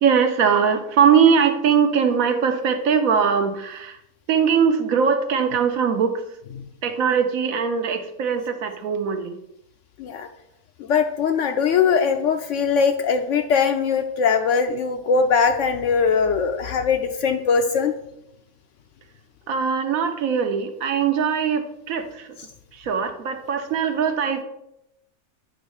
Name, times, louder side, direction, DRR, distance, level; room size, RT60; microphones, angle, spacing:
voice 1, 0.0-3.9 4.3-6.2 6.8-9.4 19.5-22.1 22.9-24.4, right 6 dB, 70° right, 7 dB, 1.1 m, -21 dB
voice 2, 10.9-17.9, left 6 dB, 65° left, 6 dB, 0.8 m, -21 dB
8.9 x 3.0 x 6.4 m, 0.84 s
omnidirectional pair, 1.6 m